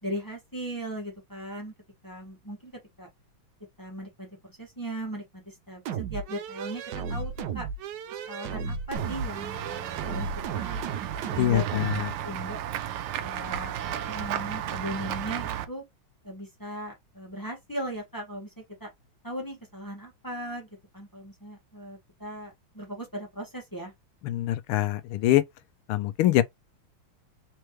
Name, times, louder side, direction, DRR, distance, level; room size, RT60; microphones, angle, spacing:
voice 1, 0.0-1.7 2.0-3.1 3.8-6.8 7.1-7.7 8.3-10.3 10.5-11.6 11.9-12.6 13.2-13.7 14.1-15.8 16.2-18.9 19.2-20.7 20.9-23.9, equal, 10° left, 1.3 m, -38 dB
sound 1, 5.9-12.0, right 6 dB, 70° right, 1.1 m, -34 dB
Run / Walk footsteps / Bell, 8.9-15.7, right 10 dB, 85° right, 1.5 m, -34 dB
voice 2, 11.4-12.1 24.2-25.4 25.9-26.4, left 14 dB, 85° left, 1.5 m, -24 dB
4.3 x 3.2 x 3.0 m
omnidirectional pair, 2.3 m